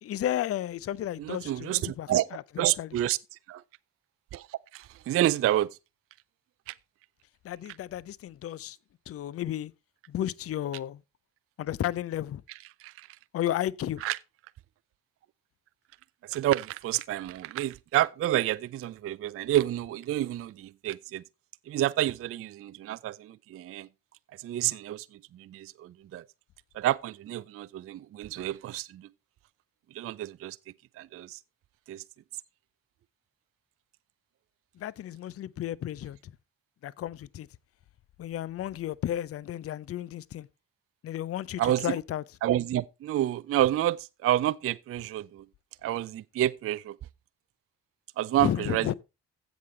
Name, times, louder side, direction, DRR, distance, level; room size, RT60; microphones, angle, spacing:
voice 1, 0.0-2.4 2.8-2.9 7.4-8.8 9.1-9.7 10.1-11.0 11.6-12.4 13.3-14.0 34.8-36.3 36.8-37.5 38.2-40.5 41.0-42.2 48.4-48.9, left 11 dB, 35° left, 0.5 m, -33 dB
voice 2, 1.2-2.3 2.6-3.6 4.3-5.8 6.7-6.8 12.8-13.1 14.0-14.2 16.2-21.2 21.7-23.9 24.3-26.2 26.7-29.1 29.9-30.6 31.0-31.4 31.9-32.0 41.6-42.0 42.4-45.5 45.8-47.0 48.2-48.9, right 13 dB, 30° right, 0.4 m, -29 dB
15.5 x 6.1 x 3.2 m
figure-of-eight pair, 40°, 46 cm